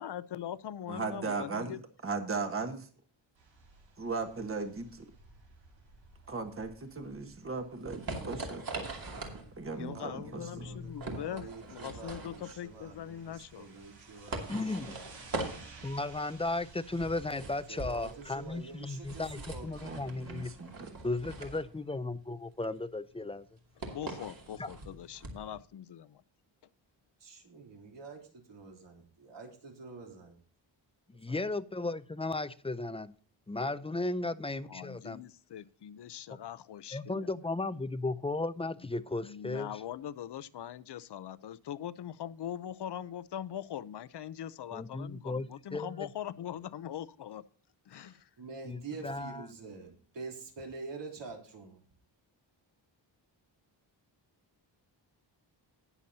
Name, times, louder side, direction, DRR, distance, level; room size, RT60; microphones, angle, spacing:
voice 1, 0.0-1.8 9.7-13.7 23.8-26.2 34.7-37.5 39.2-47.4 47.9-48.3, left 10 dB, 60° left, 17 dB, 0.7 m, -42 dB
voice 2, 0.9-1.7 2.0-2.9 4.0-5.1 6.3-8.9 9.6-10.7 19.8-20.9, right 4 dB, 30° right, 6 dB, 1.4 m, -37 dB
sound 1, 3.4-21.5, right 3 dB, 85° right, 4.9 m, -57 dB
sound 2, 7.2-25.6, right 2 dB, 50° right, 2.6 m, -43 dB
voice 3, 9.7-15.0 17.3-20.2 27.2-30.4 31.3-31.4 47.9-51.8, right 4 dB, 70° right, 0 dB, 3.5 m, -47 dB
voice 4, 14.5-15.0 15.8-20.5 21.0-23.5 24.6-24.7 31.1-33.1 33.5-35.2 36.9-39.7 44.7-46.1 48.7-49.4, left 2 dB, 15° left, 13 dB, 0.5 m, -35 dB
19.0 x 7.1 x 2.8 m, 0.43 s
wide cardioid pair, 130°, 45 cm